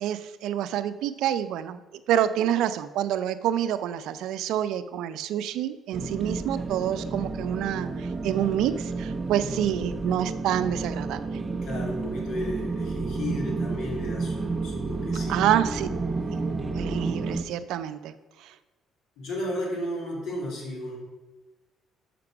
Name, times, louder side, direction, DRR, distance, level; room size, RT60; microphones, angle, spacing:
voice 1, 0.0-1.8 2.1-11.3 15.3-15.9 16.3-16.4 16.7-18.1 18.4-18.5, right 11 dB, 80° right, 12 dB, 0.4 m, -27 dB
sound 1, 5.9-17.4, right 3 dB, 20° right, 0.5 m, -31 dB
voice 2, 11.6-15.9 19.2-21.0, left 1 dB, 80° left, -2 dB, 2.6 m, -34 dB
5.9 x 5.3 x 6.0 m, 1.2 s
cardioid pair, 115°, 0 cm